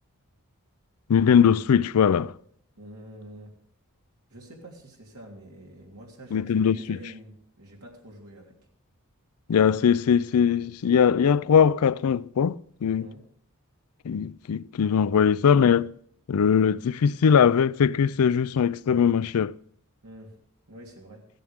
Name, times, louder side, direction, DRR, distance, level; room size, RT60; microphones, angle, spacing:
voice 1, 1.1-2.4 6.3-7.0 9.5-13.1 14.0-15.9 16.3-19.5, left 7 dB, 80° left, 0.4 m, -21 dB
voice 2, 2.7-3.5 4.3-8.5 13.0-13.2 20.0-20.4 20.7-21.2, right 1 dB, 90° right, 3.4 m, -46 dB
15.5 x 14.0 x 3.6 m
head